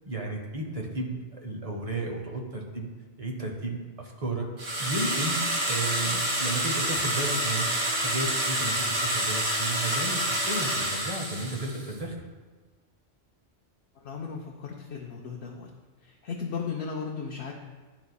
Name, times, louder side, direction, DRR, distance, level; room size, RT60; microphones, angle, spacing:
voice 1, 0.0-2.9 3.2-4.5 4.8-7.7 8.0-12.2, right 2 dB, 35° right, 1 dB, 0.7 m, -33 dB
sound 1, 4.6-11.9, right 1 dB, 70° right, 1.4 m, -28 dB
voice 2, 14.0-15.7 16.0-17.5, left 5 dB, 65° left, 0 dB, 0.8 m, -36 dB
10.5 x 4.0 x 2.3 m, 1.3 s
omnidirectional pair, 1.3 m